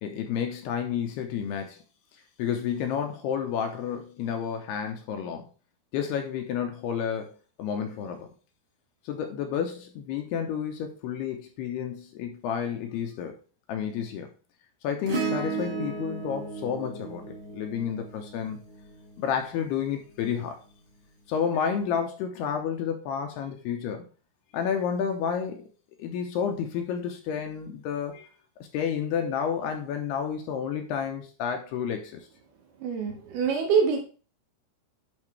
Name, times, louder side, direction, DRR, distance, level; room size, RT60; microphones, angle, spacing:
voice 1, 0.0-1.8 2.4-5.5 5.9-7.3 7.6-8.3 9.0-13.3 13.7-14.3 14.8-18.6 19.2-20.6 21.3-24.0 24.5-25.7 26.0-28.3 28.7-32.3, left 7 dB, 75° left, 4 dB, 2.6 m, -30 dB
Acoustic guitar / Strum, 15.1-19.7 21.5-21.6, right 4 dB, 45° right, 3.0 m, -35 dB
voice 2, 32.8-34.0, right 6 dB, 70° right, 2 dB, 3.1 m, -25 dB
11.0 x 4.9 x 3.2 m, 0.37 s
omnidirectional pair, 5.1 m